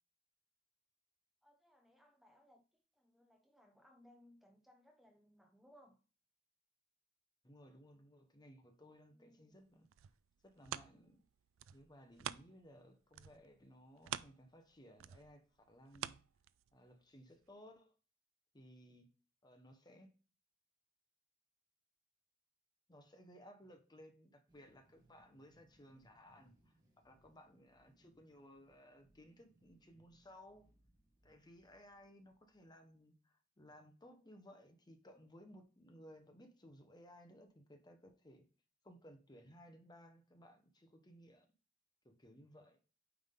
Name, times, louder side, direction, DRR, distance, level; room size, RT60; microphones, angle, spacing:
voice 1, 1.4-6.0 9.1-9.7, left 1 dB, ahead, 0.8 m, -66 dB
voice 2, 7.4-9.9 10.4-11.2 11.7-16.2 16.7-17.9 18.5-19.1 19.4-20.1 22.9-26.5 27.0-30.7 31.2-38.5 38.8-41.5 42.0-42.8, equal, 20° left, 1.0 m, -60 dB
sound 1, 9.6-12.8 13.1-16.9 17.4-17.5, right 11 dB, 75° right, 0.3 m, -48 dB
sound 2, 24.5-32.9, right 1 dB, 20° right, 2.0 m, -73 dB
9.2 x 3.6 x 3.8 m
head